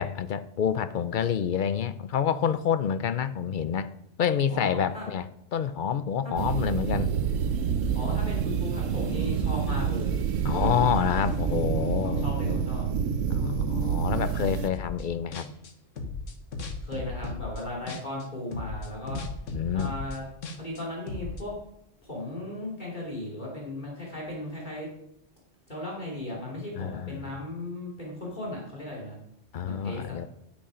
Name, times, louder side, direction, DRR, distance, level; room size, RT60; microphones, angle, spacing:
voice 1, 0.0-3.9 4.2-7.1 9.7-9.8 10.4-12.6 13.3-15.5 19.5-19.9 26.7-27.3 29.5-30.3, left 8 dB, 55° left, 13 dB, 0.6 m, -28 dB
voice 2, 4.5-5.1 7.9-10.8 12.0-12.9 16.8-19.2 19.7-20.2 20.5-21.5 22.0-24.9 25.7-29.2 29.6-30.2, left 1 dB, 40° left, -3 dB, 2.9 m, -36 dB
sound 1, 6.4-14.7, right 7 dB, 85° right, 1.1 m, -28 dB
sound 2, 14.7-15.1 15.3-18.2 18.5-21.4, left 3 dB, 80° left, 1.6 m, -36 dB
9.8 x 8.4 x 5.0 m, 0.76 s
omnidirectional pair, 1.3 m